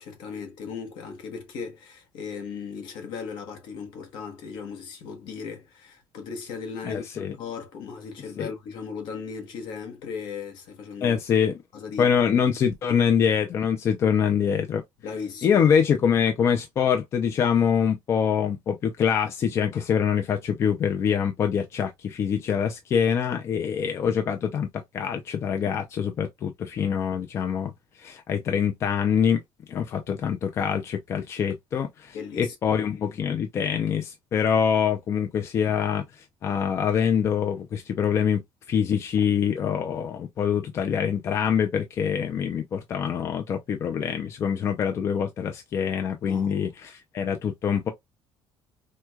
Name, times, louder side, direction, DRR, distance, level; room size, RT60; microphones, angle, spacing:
voice 1, 0.0-11.2 11.7-12.4 15.0-15.6 32.1-32.8 46.2-46.6, left 5 dB, 70° left, 1.0 m, -37 dB
voice 2, 6.8-7.3 8.4-8.5 11.0-11.5 12.0-14.8 15.4-27.7 28.0-29.4 29.7-38.4 38.7-47.9, left 7 dB, 35° left, 0.4 m, -25 dB
4.5 x 2.2 x 2.3 m
cardioid pair, 170°, 8 cm